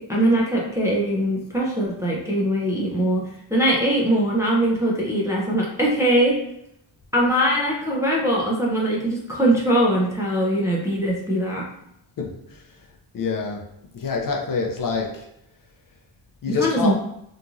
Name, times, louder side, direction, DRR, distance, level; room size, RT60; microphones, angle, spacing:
voice 1, 0.0-6.4 7.1-11.7 16.5-16.9, right 1 dB, 10° right, -4 dB, 0.3 m, -21 dB
voice 2, 13.1-13.7 13.9-15.3 16.4-16.9, left 4 dB, 50° left, 1 dB, 0.5 m, -26 dB
3.0 x 2.4 x 2.4 m, 0.77 s
wide cardioid pair, 160°, 44 cm